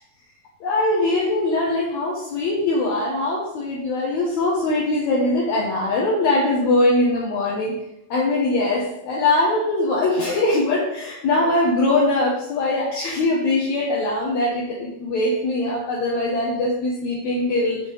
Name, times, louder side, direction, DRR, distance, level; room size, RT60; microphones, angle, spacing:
voice 1, 0.6-7.7 8.1-17.8, left 2 dB, 65° left, -4 dB, 2.3 m, -21 dB
7.2 x 6.9 x 3.3 m, 0.85 s
omnidirectional pair, 3.7 m